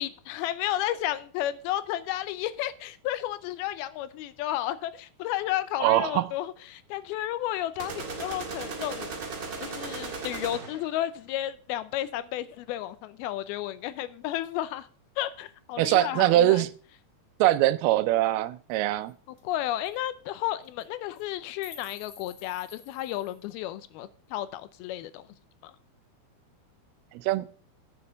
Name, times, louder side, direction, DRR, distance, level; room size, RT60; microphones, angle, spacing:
voice 1, 0.0-9.1 9.6-14.9 15.2-16.7 19.4-25.3 25.6-25.8, left 13 dB, 85° left, 2.6 m, -32 dB
voice 2, 5.8-6.3 15.8-16.7 17.4-19.1 27.1-27.5, right 14 dB, 90° right, 2.6 m, -22 dB
sound 1, 7.8-10.9, right 4 dB, 45° right, 1.5 m, -36 dB
sound 2, 18.7-18.8 19.1-19.2 19.4-19.6 19.8-20.0 20.6-20.8 21.2-23.5, left 5 dB, 45° left, 2.5 m, -50 dB
8.7 x 7.0 x 6.6 m
omnidirectional pair, 4.3 m